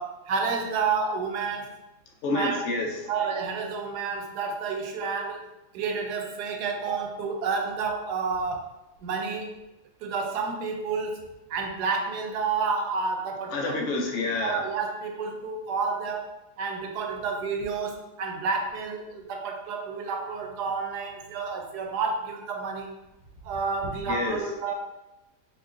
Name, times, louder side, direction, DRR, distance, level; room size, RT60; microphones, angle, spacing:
voice 1, 0.0-1.7 2.3-2.6 3.1-5.4 5.7-8.7 9.0-9.5 10.0-11.2 11.5-13.8 14.4-22.9 23.4-24.7, right 5 dB, 80° right, 3 dB, 1.1 m, -30 dB
voice 2, 2.2-3.0 13.5-14.6 24.1-24.4, left 2 dB, 65° left, 1 dB, 0.7 m, -28 dB
3.8 x 2.9 x 2.5 m, 0.93 s
omnidirectional pair, 1.8 m